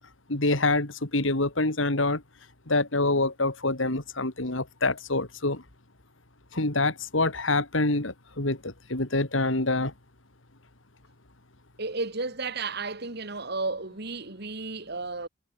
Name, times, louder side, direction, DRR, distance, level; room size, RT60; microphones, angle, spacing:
voice 1, 0.3-2.2 2.7-5.6 6.5-9.9, left 2 dB, 80° left, 3.0 m, -26 dB
voice 2, 11.8-15.3, right 3 dB, 55° right, 3.0 m, -33 dB
head